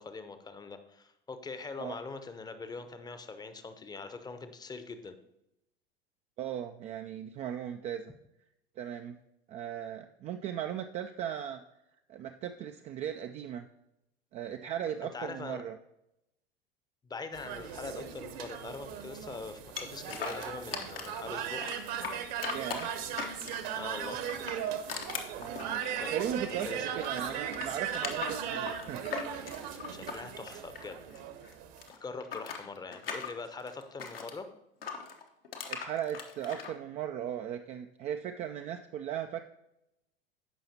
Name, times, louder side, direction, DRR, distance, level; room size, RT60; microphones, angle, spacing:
voice 1, 0.0-5.2 15.0-15.6 17.0-21.6 23.7-24.2 25.7-26.2 26.5-27.0 29.9-31.0 32.0-34.5, left 4 dB, 15° left, 9 dB, 0.7 m, -43 dB
voice 2, 6.4-8.0 8.8-9.1 9.5-11.6 12.1-13.7 14.3-15.8 22.5-22.9 25.4-29.0 35.7-39.4, right 9 dB, 25° right, 6 dB, 0.3 m, -37 dB
sound 1, 17.3-31.9, right 8 dB, 50° right, 1.0 m, -38 dB
sound 2, 19.8-21.2 21.6-23.7 24.2-26.7 27.0-31.2 31.4-34.4 34.8-36.7, left 6 dB, 75° left, 1.1 m, -40 dB
15.0 x 5.6 x 2.8 m, 0.86 s
figure-of-eight pair, 80°, 29 cm